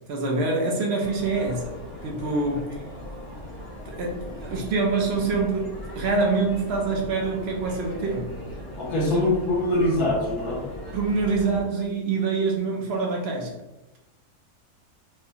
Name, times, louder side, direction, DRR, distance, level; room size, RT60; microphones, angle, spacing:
voice 1, 0.1-1.8 2.0-2.7 3.9-8.4 9.0-9.3 10.9-13.6, right 3 dB, 55° right, 0 dB, 0.8 m, -25 dB
sound 1, 1.0-11.7, equal, 15° left, 1.1 m, -39 dB
voice 2, 8.8-10.6, left 1 dB, 85° left, -5 dB, 1.6 m, -23 dB
4.7 x 2.1 x 2.8 m, 0.98 s
omnidirectional pair, 1.6 m